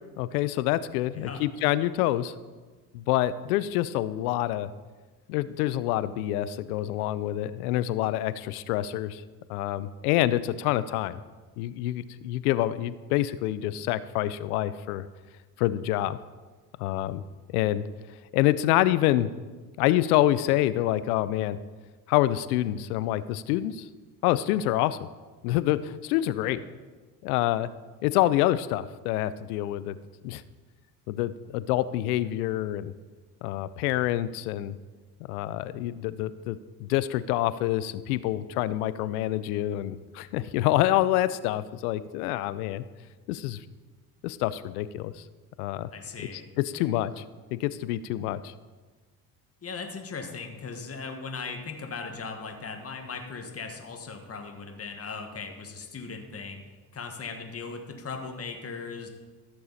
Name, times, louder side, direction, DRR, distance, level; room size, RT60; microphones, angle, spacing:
voice 1, 0.2-2.3 2.9-4.7 5.3-9.2 9.5-11.2 11.6-15.1 15.6-16.2 16.8-17.2 17.5-17.8 18.3-19.3 19.8-21.6 22.1-23.9 24.2-25.0 25.4-26.6 27.2-27.7 28.0-30.0 30.2-30.4 31.1-32.9 33.4-34.7 35.3-42.8 43.3-43.6 44.2-45.1 45.6-45.9 46.6-47.1 47.5-48.5, left 14 dB, 85° left, 15 dB, 0.6 m, -27 dB
voice 2, 1.1-1.5 26.4-26.6 45.9-46.5 46.7-46.9 49.6-56.6 56.9-59.1, left 4 dB, 30° left, 4 dB, 1.7 m, -38 dB
14.5 x 6.7 x 4.1 m, 1.3 s
hypercardioid pair, 60°, 44 cm